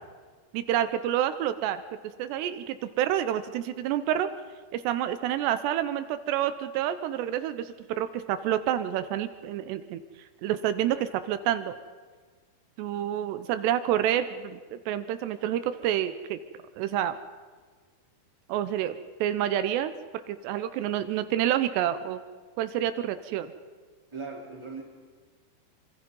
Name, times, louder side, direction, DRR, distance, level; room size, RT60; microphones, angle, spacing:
voice 1, 0.5-1.8 2.2-4.3 4.7-10.0 10.4-11.7 12.8-16.4 16.8-17.2 18.5-18.9 19.2-19.9 20.3-22.2 22.6-23.5, right 11 dB, 80° right, 11 dB, 2.9 m, -28 dB
voice 2, 24.1-24.8, right 4 dB, 5° right, -2 dB, 3.0 m, -38 dB
26.0 x 25.0 x 5.4 m, 1.5 s
omnidirectional pair, 4.9 m